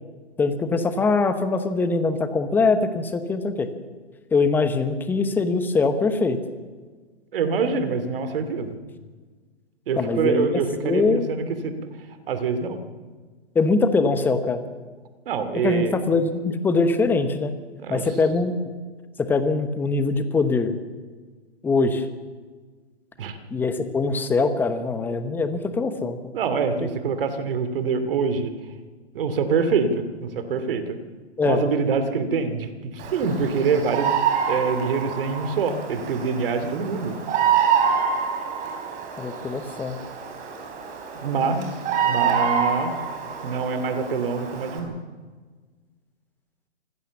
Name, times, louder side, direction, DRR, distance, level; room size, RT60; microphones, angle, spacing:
voice 1, 0.4-3.7 4.3-6.4 10.0-10.5 10.8-11.3 13.5-14.6 15.6-17.5 17.9-18.5 19.2-20.7 21.6-22.1 23.5-26.2 26.8-26.9 31.4-31.6 39.2-40.0, left 3 dB, 5° left, 10 dB, 0.9 m, -22 dB
voice 2, 7.3-8.8 9.9-11.7 12.3-12.8 15.3-16.0 17.8-18.0 23.2-23.4 26.3-28.5 29.1-31.0 31.4-34.2 34.5-37.2 41.2-41.7 42.0-42.9 43.4-44.9, right 5 dB, 50° right, 9 dB, 2.7 m, -25 dB
Bird vocalization bird call bird song, 33.0-44.8, right 7 dB, 20° right, 3.9 m, -26 dB
25.0 x 16.0 x 7.2 m, 1.4 s
hypercardioid pair, 140°, 35 cm